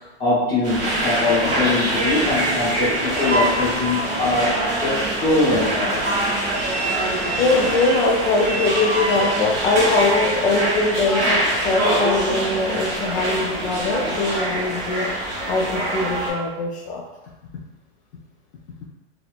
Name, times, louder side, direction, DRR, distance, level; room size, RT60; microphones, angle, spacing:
voice 1, 0.2-5.9, left 2 dB, 25° left, -11 dB, 1.1 m, -22 dB
sound 1, 0.6-16.3, right 1 dB, 15° right, 0.3 m, -24 dB
voice 2, 7.4-15.1 15.5-17.0, left 3 dB, 70° left, -3 dB, 0.5 m, -22 dB
3.0 x 2.0 x 2.4 m, 1.1 s
supercardioid pair, 150°, 34 cm